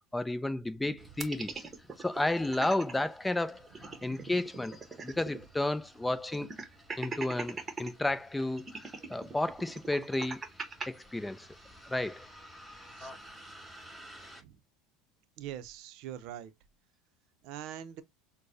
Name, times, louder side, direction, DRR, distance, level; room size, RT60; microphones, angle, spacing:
voice 1, 0.1-1.7 2.0-3.7 4.0-4.7 5.0-6.5 7.0-10.4 10.9-11.5 11.8-12.3, left 2 dB, 10° left, 0.6 m, -32 dB
Bus, 1.0-14.4, equal, 5° right, 3.3 m, -54 dB
sound 1, 1.2-2.9 3.3-3.4 3.7-5.4 5.7-5.8 6.3-7.9 8.6-10.9, right 4 dB, 25° right, 1.1 m, -41 dB
voice 2, 15.4-16.5 17.4-18.0, right 11 dB, 60° right, 0.6 m, -43 dB
6.3 x 2.2 x 2.7 m
hypercardioid pair, 95°, 0 cm